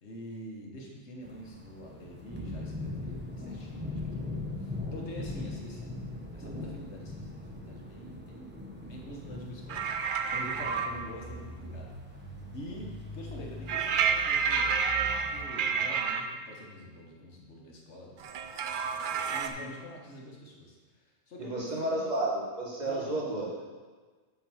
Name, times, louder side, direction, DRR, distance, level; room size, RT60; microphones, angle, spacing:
voice 1, 0.0-12.3 12.5-18.2 18.9-22.0 22.9-23.4, equal, 80° left, -1 dB, 1.6 m, -46 dB
sound 1, 1.2-15.4, left 2 dB, 10° right, 0.8 m, -41 dB
sound 2, 9.7-10.9 13.7-16.2 18.2-19.5, right 6 dB, 55° right, 0.6 m, -29 dB
voice 2, 21.4-23.6, right 1 dB, 40° right, -4 dB, 1.7 m, -32 dB
7.6 x 4.7 x 6.2 m, 1.4 s
omnidirectional pair, 1.1 m